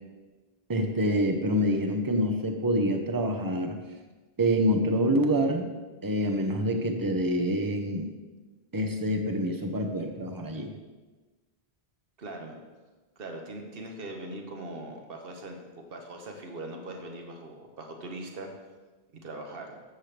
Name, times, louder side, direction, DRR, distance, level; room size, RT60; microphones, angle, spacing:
voice 1, 0.7-3.8 4.4-5.7 6.0-8.1 8.7-10.7, equal, 20° right, 4 dB, 0.9 m, -26 dB
voice 2, 12.2-12.6 13.2-15.6 15.9-18.5 19.2-19.8, right 2 dB, 60° right, 3 dB, 1.4 m, -40 dB
13.0 x 7.5 x 3.4 m, 1.3 s
omnidirectional pair, 1.1 m